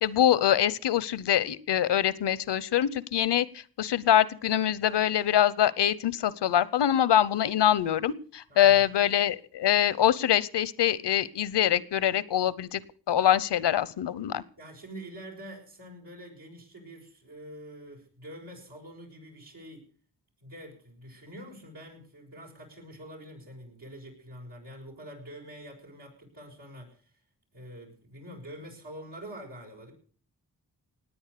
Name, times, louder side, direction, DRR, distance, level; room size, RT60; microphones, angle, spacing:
voice 1, 0.0-12.8 13.1-14.4, left 10 dB, 85° left, 20 dB, 0.8 m, -24 dB
voice 2, 8.5-8.8 14.6-19.9 20.4-27.1 27.5-29.9, right 1 dB, 90° right, -1 dB, 6.3 m, -46 dB
19.0 x 8.9 x 6.7 m, 0.43 s
cardioid pair, 40°, 40 cm